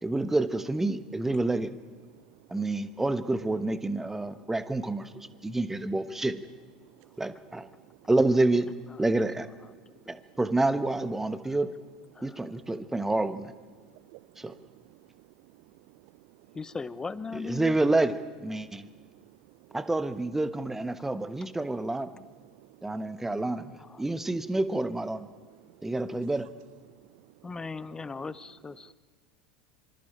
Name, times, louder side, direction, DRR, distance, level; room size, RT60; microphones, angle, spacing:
voice 1, 0.0-1.7 2.5-6.4 7.2-7.7 8.1-8.7 9.0-9.5 10.1-11.7 12.2-13.5 14.4-14.5 17.3-18.9 19.7-22.1 22.8-25.3 25.8-26.5, right 2 dB, 10° right, 12 dB, 1.2 m, -28 dB
voice 2, 6.9-7.2 13.8-15.0 16.0-16.1 16.5-16.6 18.6-18.8 19.1-19.4 19.7-19.8 22.4-22.8 26.9-27.0 28.0-28.1, right 18 dB, 55° right, 16 dB, 0.5 m, -56 dB
voice 3, 16.5-17.8 23.9-24.0 27.4-28.9, left 4 dB, 15° left, 17 dB, 0.8 m, -37 dB
26.5 x 25.5 x 4.5 m, 1.5 s
figure-of-eight pair, 75°, 4 cm